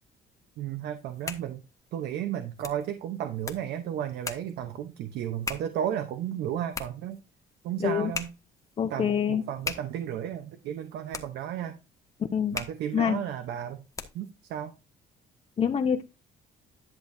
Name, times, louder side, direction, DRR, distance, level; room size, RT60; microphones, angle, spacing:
voice 1, 0.6-1.6 1.9-7.2 7.6-8.3 8.8-11.8 12.5-13.8 14.1-14.7, right 10 dB, 75° right, 8 dB, 1.0 m, -33 dB
sound 1, 1.0-14.4, left 4 dB, 20° left, 1.4 m, -42 dB
voice 2, 8.8-9.4 12.3-12.6 12.9-13.2 15.6-16.0, left 8 dB, 35° left, 5 dB, 0.9 m, -25 dB
11.0 x 6.7 x 2.7 m, 0.27 s
cardioid pair, 110°, 17 cm